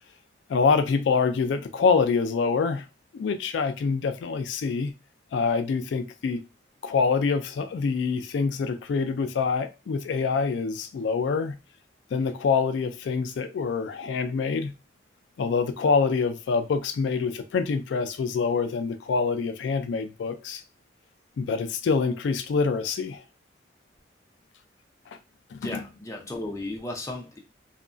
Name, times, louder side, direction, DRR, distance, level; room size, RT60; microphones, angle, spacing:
voice 1, 0.5-2.9 3.1-4.9 5.3-6.4 6.8-11.6 12.1-14.7 15.4-20.6 21.4-23.2 25.5-25.8, left 5 dB, 80° left, 0.3 m, -25 dB
voice 2, 25.6-27.4, left 2 dB, 15° left, 0.5 m, -35 dB
2.8 x 2.3 x 2.5 m
head